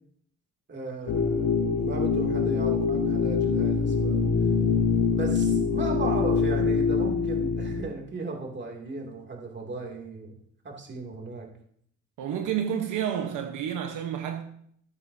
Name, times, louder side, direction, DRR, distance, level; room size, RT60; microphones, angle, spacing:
voice 1, 0.7-4.2 5.1-10.4 10.6-11.5, right 3 dB, 35° right, 2.6 m, -36 dB
sound 1, 1.1-7.8, left 5 dB, 75° left, 1.4 m, -24 dB
voice 2, 12.2-14.4, right 9 dB, 85° right, 1.1 m, -30 dB
13.5 x 10.0 x 2.7 m
cardioid pair, 90°, 30 cm